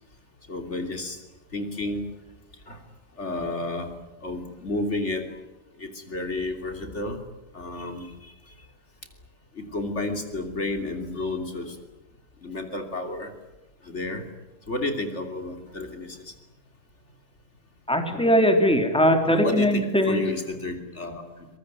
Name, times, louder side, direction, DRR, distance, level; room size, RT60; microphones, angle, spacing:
voice 1, 0.5-1.2 1.5-2.0 2.7-2.8 3.2-3.9 4.2-5.4 5.8-7.2 7.5-8.3 9.5-11.8 12.4-13.3 13.8-14.2 14.7-16.3 19.3-21.5, left 2 dB, 60° left, 5 dB, 3.4 m, -31 dB
voice 2, 17.9-20.2, equal, 5° left, 5 dB, 3.2 m, -20 dB
24.0 x 22.0 x 9.5 m, 1.1 s
omnidirectional pair, 1.3 m